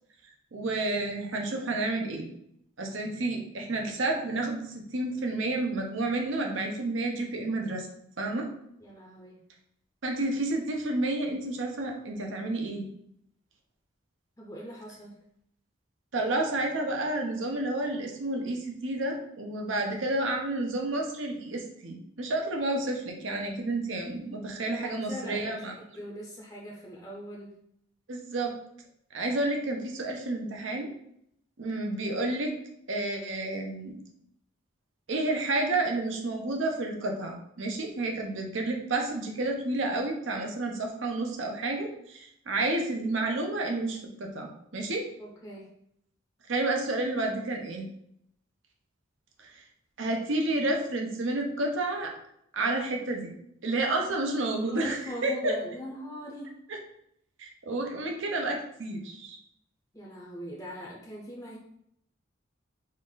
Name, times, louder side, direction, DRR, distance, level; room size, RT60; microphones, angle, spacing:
voice 1, 0.5-2.3 2.8-7.9 8.2-8.5 10.0-12.9 16.1-25.7 28.1-28.5 29.1-30.9 31.6-32.5 32.9-34.0 35.1-45.1 46.5-47.9 49.4-49.5 50.0-52.1 52.5-53.3 53.6-55.5 56.7-56.8 57.4-59.4, right 2 dB, 75° right, 2 dB, 0.7 m, -30 dB
voice 2, 8.8-9.4 14.4-15.2 24.6-27.5 45.2-45.7 54.6-56.6 59.9-61.6, equal, 15° left, -3 dB, 0.5 m, -41 dB
4.4 x 2.4 x 3.8 m, 0.73 s
head